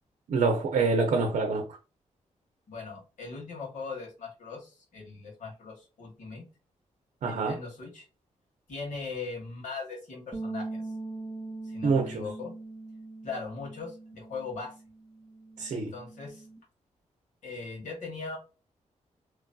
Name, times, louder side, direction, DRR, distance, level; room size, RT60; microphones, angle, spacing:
voice 1, 0.3-1.7 7.2-7.6 11.8-12.2 15.6-15.9, right 4 dB, 80° right, 0.6 m, -26 dB
voice 2, 2.7-6.4 7.2-8.1 8.7-10.8 11.6-12.5 13.2-14.8 15.7-16.5 17.4-18.4, left 4 dB, 80° left, 1.6 m, -39 dB
sound 1, 10.3-16.6, right 2 dB, 10° right, 0.7 m, -41 dB
3.0 x 2.6 x 2.2 m
wide cardioid pair, 155°, 13 cm